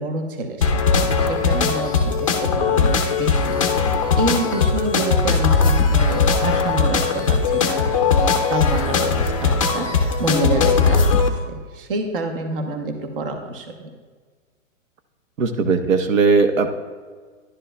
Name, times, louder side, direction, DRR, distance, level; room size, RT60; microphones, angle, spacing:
voice 1, 0.0-13.9, right 2 dB, 45° right, 5 dB, 0.9 m, -28 dB
sound 1, 0.6-11.3, left 5 dB, 25° left, 0.4 m, -19 dB
voice 2, 15.4-16.8, right 4 dB, 80° right, 7 dB, 0.9 m, -18 dB
11.0 x 9.7 x 2.2 m, 1.5 s
hypercardioid pair, 175°, 39 cm